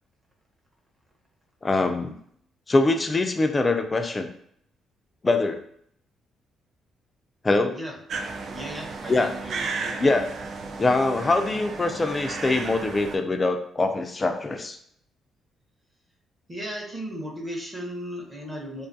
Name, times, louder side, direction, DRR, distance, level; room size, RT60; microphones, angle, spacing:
voice 1, 1.6-2.1 2.7-4.3 5.2-5.6 7.4-7.7 9.1-9.3 10.0-10.3 10.8-14.8, left 2 dB, 25° left, 6 dB, 0.3 m, -23 dB
sound 1, 8.1-13.2, right 4 dB, 60° right, 0.3 m, -34 dB
voice 2, 8.5-10.0 16.5-18.9, equal, 25° right, -1 dB, 0.8 m, -36 dB
2.5 x 2.4 x 2.6 m, 0.67 s
cardioid pair, 90°, 0 cm